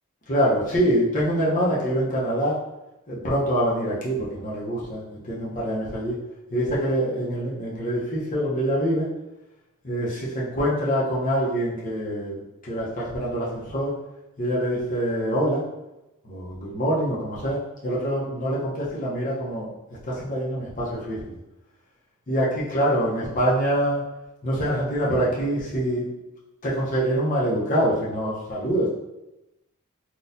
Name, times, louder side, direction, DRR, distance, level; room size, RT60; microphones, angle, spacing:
voice 1, 0.3-2.6 3.1-5.0 5.3-6.1 6.5-9.1 9.8-12.4 12.7-13.9 14.4-15.6 16.2-19.7 20.0-21.2 22.3-24.0 24.4-26.1 26.6-28.9, equal, 40° left, -7 dB, 0.7 m, -25 dB
4.1 x 2.3 x 2.6 m, 0.95 s
head